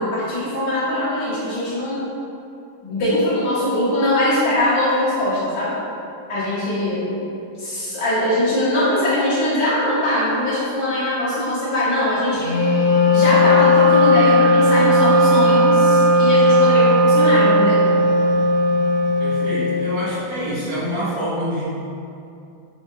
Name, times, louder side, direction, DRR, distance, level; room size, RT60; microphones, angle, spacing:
voice 1, 0.0-2.0 2.8-5.7 6.3-7.0 7.6-12.5 13.1-17.8, left 1 dB, 55° left, -9 dB, 1.6 m, -21 dB
Wind instrument woodwind instrument, 12.4-20.2, equal, 85° left, 1.6 m, -16 dB
voice 2, 19.2-21.7, right 1 dB, 80° right, -9 dB, 1.8 m, -26 dB
5.1 x 2.2 x 2.6 m, 2.6 s
omnidirectional pair, 2.2 m